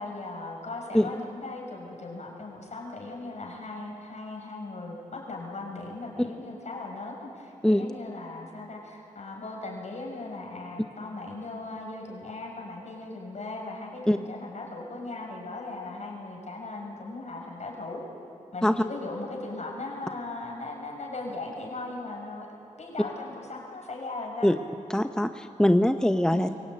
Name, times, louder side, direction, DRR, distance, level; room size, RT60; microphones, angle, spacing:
voice 1, 0.0-18.0 18.5-22.5 22.8-24.5 26.3-26.5, left 2 dB, 60° left, -1 dB, 6.7 m, -38 dB
voice 2, 24.9-26.5, left 1 dB, 5° left, 8 dB, 0.9 m, -22 dB
23.5 x 17.0 x 9.0 m, 2.8 s
cardioid pair, 60°, 14 cm